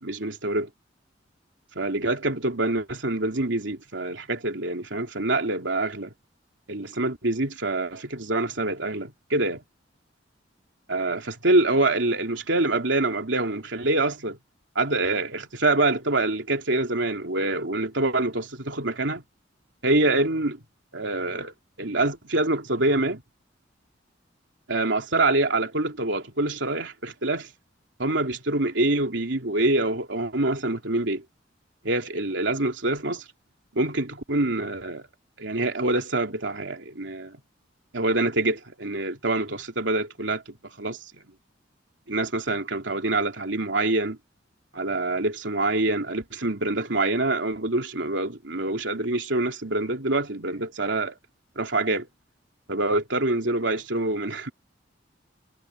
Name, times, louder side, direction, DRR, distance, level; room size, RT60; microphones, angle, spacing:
voice 1, 0.0-0.7 1.8-6.1 6.7-9.6 10.9-14.4 14.7-19.2 19.8-20.6 20.9-21.5 21.8-23.2 24.7-27.5 28.0-31.2 31.8-33.2 33.7-35.1 35.4-37.4 37.9-41.0 42.1-44.2 44.8-51.1 51.5-52.1 52.7-54.5, right 2 dB, 75° right, 3.3 m, -25 dB
head